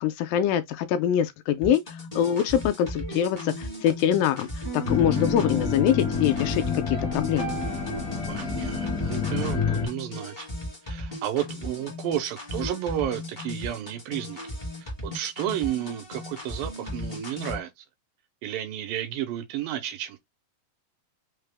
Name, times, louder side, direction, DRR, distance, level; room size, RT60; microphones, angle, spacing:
voice 1, 0.0-1.8 2.2-4.5 4.7-7.6, left 10 dB, 80° left, 2.1 m, -24 dB
sound 1, 1.6-17.6, left 1 dB, 40° left, 0.6 m, -37 dB
sound 2, 2.9-8.3, right 2 dB, 65° right, 0.7 m, -38 dB
sound 3, 4.8-9.9, left 6 dB, 65° left, 0.9 m, -28 dB
voice 2, 8.3-10.5 10.8-14.4 14.8-17.9 18.4-20.2, right 11 dB, 85° right, 2.3 m, -32 dB
5.6 x 2.0 x 3.3 m
omnidirectional pair, 4.2 m